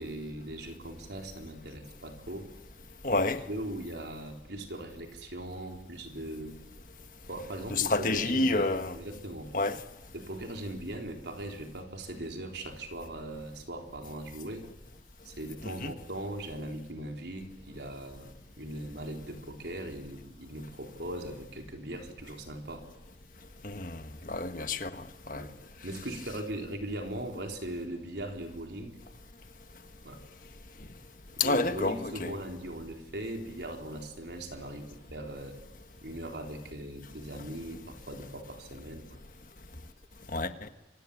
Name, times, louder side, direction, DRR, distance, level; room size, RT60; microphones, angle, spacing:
voice 1, 0.0-2.5 3.1-6.6 7.3-9.5 10.1-14.7 15.2-22.8 25.3-25.5 25.8-29.0 30.0-30.2 31.3-35.6 36.0-39.2, right 1 dB, 70° right, 4.0 m, -40 dB
voice 2, 3.0-3.4 7.7-8.9 9.5-9.8 15.6-15.9 23.6-25.5 31.4-32.3 40.3-40.7, left 3 dB, 50° left, 1.5 m, -29 dB
29.0 x 24.0 x 8.5 m
head